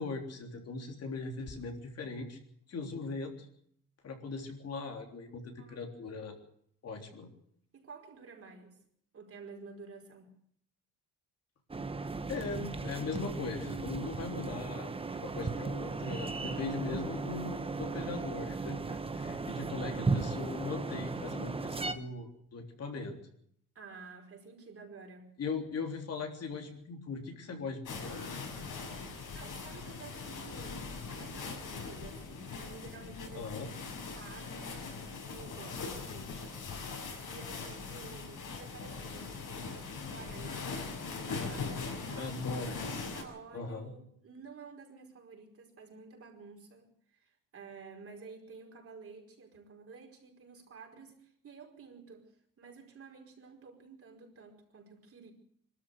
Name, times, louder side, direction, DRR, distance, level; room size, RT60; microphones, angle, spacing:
voice 1, 0.0-2.4 2.7-3.5 4.0-6.3 6.8-7.3 12.3-23.2 25.4-28.2 33.3-33.7 42.2-43.0 43.5-43.9, left 3 dB, 50° left, 4 dB, 3.5 m, -39 dB
voice 2, 7.7-8.8 9.1-10.3 23.7-25.3 28.8-40.9 41.2-42.4 42.9-55.3, right 4 dB, 45° right, 1 dB, 5.0 m, -52 dB
sound 1, 11.7-21.9, right 3 dB, 15° right, 1.2 m, -36 dB
sound 2, 27.9-43.2, left 4 dB, 70° left, 6.7 m, -41 dB
23.5 x 13.5 x 8.2 m, 0.67 s
cardioid pair, 135°, 32 cm